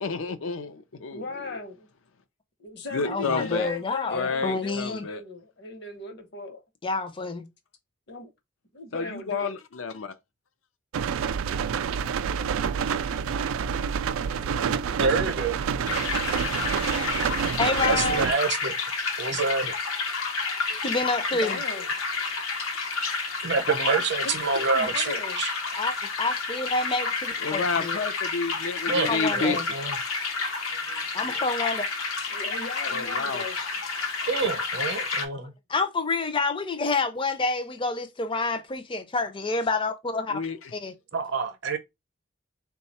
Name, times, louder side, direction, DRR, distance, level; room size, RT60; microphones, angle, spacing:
voice 1, 0.0-1.2 2.9-3.7 4.1-5.2 8.9-10.1 27.4-29.6 32.9-33.4 40.3-40.7, left 4 dB, 75° left, 0.5 m, -30 dB
voice 2, 1.1-1.9 2.6-6.6 8.1-8.3 8.7-9.5 21.3-21.9 24.2-25.4 32.3-33.6, left 3 dB, 55° left, 1.0 m, -37 dB
voice 3, 3.1-5.1 6.8-7.5 14.4-14.6 17.6-18.2 20.7-21.6 25.8-25.9 26.2-28.0 29.1-29.7 31.1-31.9 35.7-40.4 40.7-40.9, left 3 dB, 25° left, 0.5 m, -28 dB
sound 1, 10.9-18.3, right 7 dB, 85° right, 0.3 m, -28 dB
voice 4, 15.0-15.6 15.9-16.0 17.8-18.7 19.2-19.7 23.4-25.5 28.9-30.0 30.9-31.0 34.3-35.5 41.1-41.8, right 4 dB, 55° right, 0.7 m, -27 dB
sound 2, 15.9-35.3, left 4 dB, 90° left, 0.9 m, -30 dB
3.8 x 2.3 x 4.1 m
head